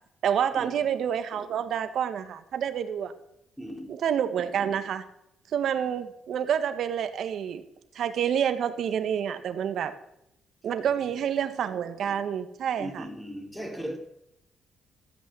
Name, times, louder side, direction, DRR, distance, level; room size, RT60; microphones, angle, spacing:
voice 1, 0.2-3.1 3.9-5.0 5.5-7.6 7.9-9.9 10.6-13.0, right 8 dB, 70° right, 1.5 m, -28 dB
voice 2, 3.6-4.0 10.9-11.2 12.8-14.0, equal, 5° left, 4.1 m, -38 dB
14.0 x 8.7 x 8.0 m
cardioid pair, 90°, 0 cm